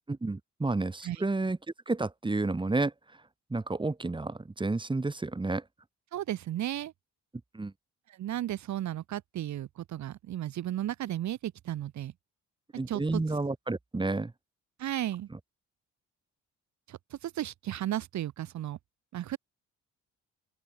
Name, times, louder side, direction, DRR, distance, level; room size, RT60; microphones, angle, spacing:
voice 1, 0.1-1.6 1.9-2.9 3.5-5.6 7.5-7.7 12.7-14.3, right 3 dB, 15° right, 1.6 m, -30 dB
voice 2, 6.1-6.9 8.1-12.1 12.9-13.2 14.8-15.3 16.9-18.8 19.1-19.4, right 12 dB, 65° right, 1.3 m, -34 dB
open air
cardioid pair, 90°, 30 cm